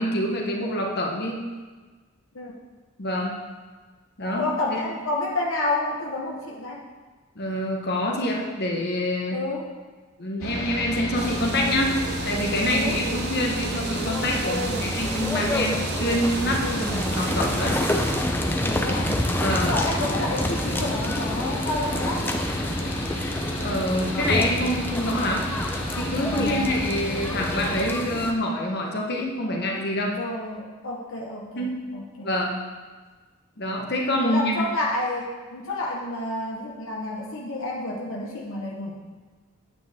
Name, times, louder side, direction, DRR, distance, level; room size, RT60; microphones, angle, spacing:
voice 1, 0.0-1.4 3.0-3.4 4.2-4.8 7.3-9.4 10.2-12.0 12.2-17.8 19.4-19.7 23.6-25.5 25.9-30.2 31.6-31.7 32.2-32.6 33.6-34.7, left 1 dB, 50° left, 0 dB, 1.3 m, -26 dB
voice 2, 4.3-6.8 9.3-9.7 12.7-13.0 14.4-14.9 16.6-16.9 18.6-19.2 19.5-22.4 26.2-26.9 30.1-32.3 34.2-39.0, left 2 dB, 70° left, -2 dB, 1.1 m, -30 dB
Mechanical fan, 10.4-27.8, equal, 85° left, 2.1 m, -32 dB
sound 1, 11.2-18.2, right 4 dB, 50° right, 0.6 m, -34 dB
sound 2, 13.9-28.3, left 1 dB, 10° left, 0.7 m, -29 dB
9.1 x 8.9 x 3.6 m, 1.4 s
head